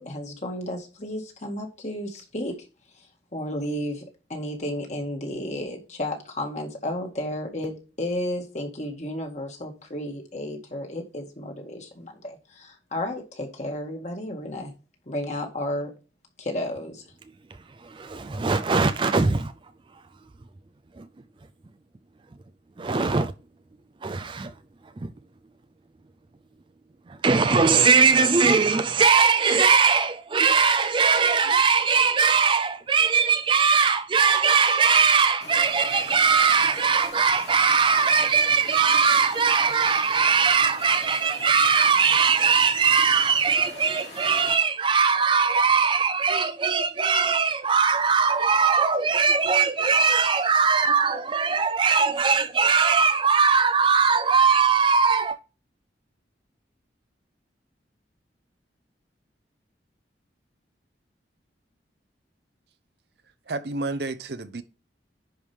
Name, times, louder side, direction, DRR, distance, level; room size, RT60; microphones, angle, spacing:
voice 1, 0.0-2.5 3.0-3.1 3.3-4.0 4.3-14.7 15.1-15.9 16.4-17.0, left 1 dB, 40° left, 1.9 m, -32 dB
voice 2, 17.9-19.5 21.0-21.1 22.8-23.3 24.0-24.5 27.2-55.4, right 5 dB, 25° right, 0.4 m, -20 dB
sound 1, 35.4-44.6, left 2 dB, 70° left, 3.3 m, -42 dB
voice 3, 63.5-64.6, right 2 dB, 65° right, 0.7 m, -30 dB
10.5 x 4.9 x 3.4 m
head